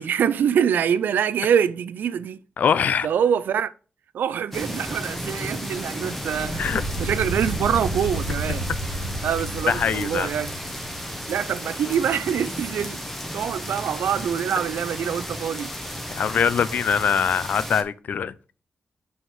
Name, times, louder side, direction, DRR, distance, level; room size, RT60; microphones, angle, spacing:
voice 1, 0.0-2.4 3.0-3.7 4.1-6.6 7.0-8.6 9.2-10.5 11.3-13.0 13.3-15.7, right 8 dB, 85° right, 0.4 m, -24 dB
voice 2, 2.6-3.1 6.6-6.8 9.0-9.1 9.7-10.3 16.1-18.3, left 7 dB, 60° left, 0.5 m, -23 dB
sound 1, 4.5-17.8, equal, 5° left, 1.0 m, -33 dB
sound 2, 6.3-11.5, right 1 dB, 40° left, 2.3 m, -32 dB
5.8 x 5.3 x 4.7 m
wide cardioid pair, 165°, 3 cm